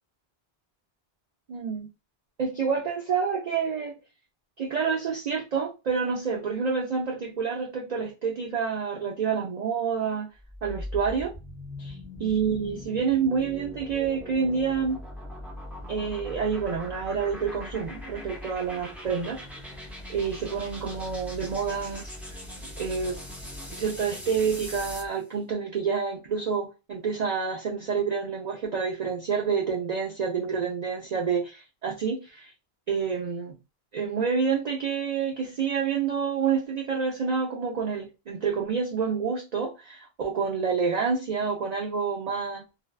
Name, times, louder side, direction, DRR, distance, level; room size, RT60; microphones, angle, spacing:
voice 1, 1.5-1.9 2.4-3.9 4.6-10.3 10.6-11.3 11.8-15.0 15.9-19.4 20.1-22.1 22.8-23.2 23.8-32.5 32.9-33.6 33.9-42.6, right 6 dB, 55° right, 0.5 m, -28 dB
sound 1, 10.4-25.2, left 1 dB, ahead, 0.4 m, -40 dB
2.6 x 2.2 x 2.2 m
omnidirectional pair, 1.1 m